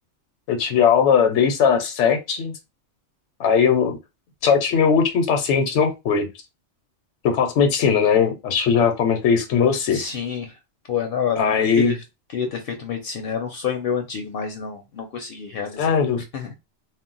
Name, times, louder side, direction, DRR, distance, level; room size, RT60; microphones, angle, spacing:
voice 1, 0.5-2.5 3.4-4.0 4.4-6.3 7.2-10.0 11.4-11.9 15.8-16.2, left 6 dB, 85° left, 0.9 m, -19 dB
voice 2, 9.9-10.5 10.9-12.0 12.3-15.9 16.3-16.5, left 7 dB, 65° left, 0.7 m, -28 dB
2.2 x 2.0 x 3.8 m
omnidirectional pair, 1.2 m